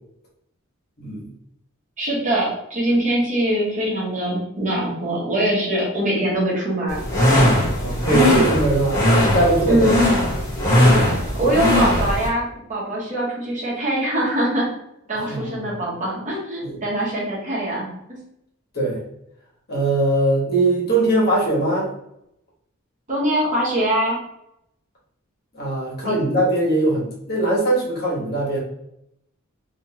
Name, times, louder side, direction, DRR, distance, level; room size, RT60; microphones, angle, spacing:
voice 1, 1.0-1.3 7.8-10.0 15.1-15.7 16.6-16.8 18.7-19.0 19.7-21.9 25.5-28.6, right 2 dB, 50° left, -4 dB, 1.4 m, -21 dB
voice 2, 2.0-7.0 9.7-10.0 11.4-14.7 15.1-17.9 23.1-24.2 26.0-26.1, right 1 dB, 40° right, -4 dB, 1.1 m, -22 dB
sound 1, 6.9-12.3, left 1 dB, 15° left, 1.4 m, -18 dB
3.3 x 2.9 x 2.9 m, 0.79 s
head